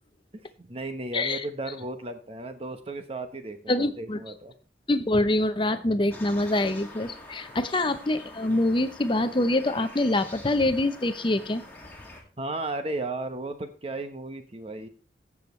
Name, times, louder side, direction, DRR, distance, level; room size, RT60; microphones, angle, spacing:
voice 1, 0.3-4.5 12.4-14.9, right 2 dB, 30° right, 8 dB, 1.1 m, -35 dB
voice 2, 3.7-4.2 4.9-11.6, left 1 dB, 25° left, 11 dB, 0.7 m, -25 dB
sound 1, 6.1-12.2, left 2 dB, 10° left, 2.3 m, -46 dB
15.0 x 7.2 x 3.2 m, 0.37 s
head